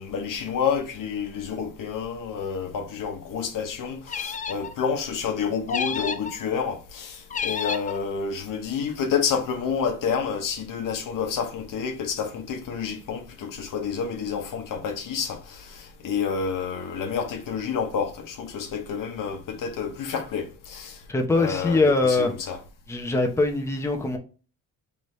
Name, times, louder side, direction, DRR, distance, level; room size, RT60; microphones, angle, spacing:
voice 1, 0.0-21.0 21.3-22.6, left 6 dB, 70° left, 1.0 m, -29 dB
sound 1, 4.1-4.7 5.7-6.4 7.3-8.0, left 6 dB, 25° left, 0.4 m, -30 dB
voice 2, 21.1-22.3 22.9-24.2, left 3 dB, 10° left, 0.8 m, -22 dB
3.9 x 3.4 x 3.2 m
cardioid pair, 110°, 34 cm